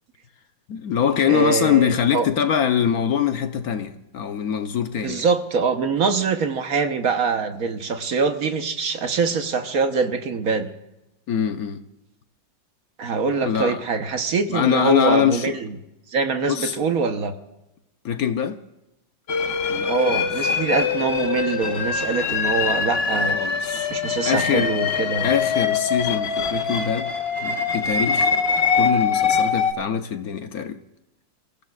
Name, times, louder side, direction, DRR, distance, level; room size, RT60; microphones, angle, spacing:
voice 1, 0.7-5.3 11.3-11.8 13.4-13.8 14.5-15.5 16.5-16.8 18.0-18.6 19.7-20.2 23.3-23.9 24.3-24.7 25.2-27.1 27.4-28.3 28.7-30.8, left 8 dB, 60° left, 1.1 m, -23 dB
voice 2, 1.2-2.3 5.0-10.7 13.0-15.8 16.1-17.3 19.9-23.4 23.9-25.3, right 4 dB, 55° right, 1.3 m, -24 dB
sound 1, 19.3-29.7, left 5 dB, 45° left, 0.9 m, -23 dB
29.0 x 15.5 x 2.4 m
omnidirectional pair, 2.1 m